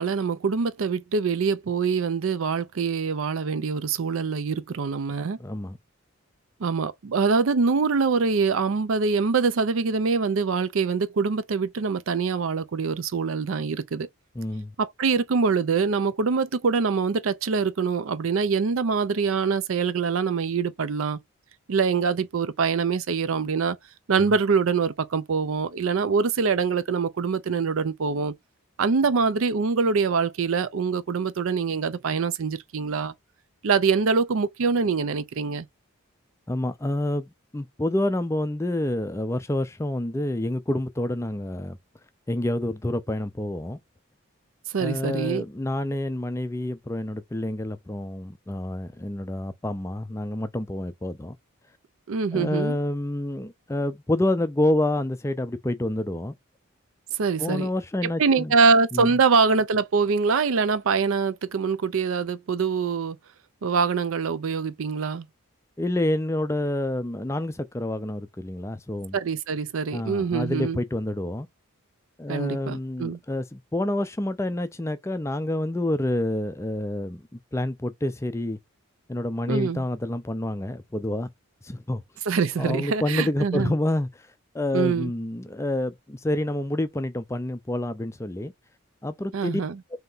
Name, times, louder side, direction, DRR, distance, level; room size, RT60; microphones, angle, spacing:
voice 1, 0.0-5.4 6.6-14.1 14.8-21.2 21.7-23.8 24.1-28.3 28.8-33.1 33.6-35.7 44.7-45.4 52.1-52.8 57.2-57.7 58.0-63.2 63.6-65.3 69.1-70.8 72.3-73.2 79.5-79.8 82.3-83.7 84.7-85.1 89.3-89.8, right 5 dB, 70° right, 0.5 m, -24 dB
voice 2, 5.4-5.8 14.4-14.7 36.5-41.8 42.3-43.8 44.8-51.4 52.3-56.3 57.4-58.5 58.9-59.2 65.8-69.2 69.9-71.5 72.2-77.2 77.5-78.6 79.1-81.3 81.6-82.0 82.6-84.1 84.5-88.5 89.0-89.6, left 1 dB, 15° left, 0.3 m, -28 dB
3.3 x 2.9 x 3.8 m
head